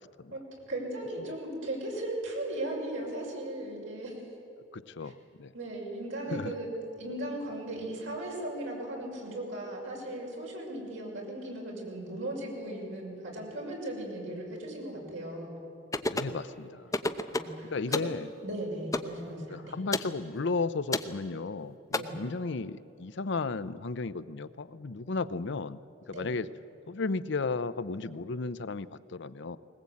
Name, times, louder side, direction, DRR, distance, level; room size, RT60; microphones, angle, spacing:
voice 1, 0.7-4.2 5.0-5.1 5.5-6.7 7.0-15.6 17.3-18.1 18.4-19.7 22.0-22.2 26.1-26.3, right 1 dB, 85° right, -2 dB, 6.3 m, -37 dB
voice 2, 4.7-5.5 6.3-6.5 16.1-16.9 17.7-18.3 19.5-25.8 26.1-26.5 26.9-29.6, left 3 dB, 65° left, 14 dB, 0.6 m, -34 dB
sound 1, 15.9-16.4 16.9-17.6 17.9-18.2 18.9-19.1 19.9-20.1 20.9-21.1 21.9-22.0, left 2 dB, 20° left, 0.8 m, -30 dB
20.5 x 20.0 x 8.5 m, 2.8 s
head